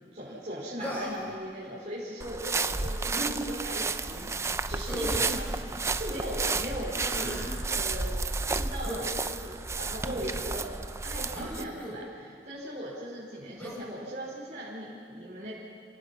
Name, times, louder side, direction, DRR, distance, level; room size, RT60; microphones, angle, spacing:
voice 1, 0.0-5.5 6.0-7.4 7.7-10.7 11.0-15.5, equal, 40° right, -8 dB, 4.8 m, -39 dB
Human voice, 0.8-1.3 3.1-3.4 4.9-5.3 6.9-7.5 8.8-9.1 10.0-10.3 11.3-12.0 13.6-13.8, equal, 10° left, 4.1 m, -37 dB
sound 1, 2.2-11.6, right 3 dB, 15° right, 0.5 m, -32 dB
29.0 x 17.5 x 5.9 m, 2.1 s
head